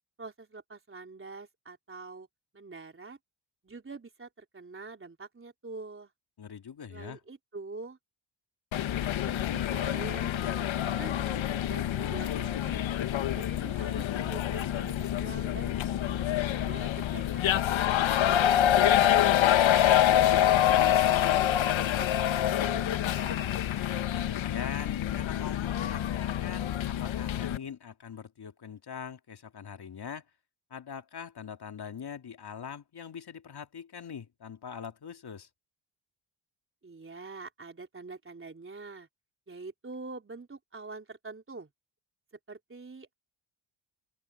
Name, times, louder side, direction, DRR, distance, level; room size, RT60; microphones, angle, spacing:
voice 1, 0.2-2.3 2.5-3.2 3.6-6.1 6.9-8.0 9.0-12.8 13.3-15.8 16.1-19.3 20.1-23.5 36.8-39.1 39.5-41.7 42.5-43.1, right 3 dB, 25° right, 3.9 m, -45 dB
voice 2, 6.4-7.2 24.2-30.2 30.7-35.5, left 7 dB, 50° left, 2.7 m, -42 dB
sound 1, 8.7-27.6, left 11 dB, 70° left, 1.3 m, -26 dB
open air
cardioid pair, 85°, 49 cm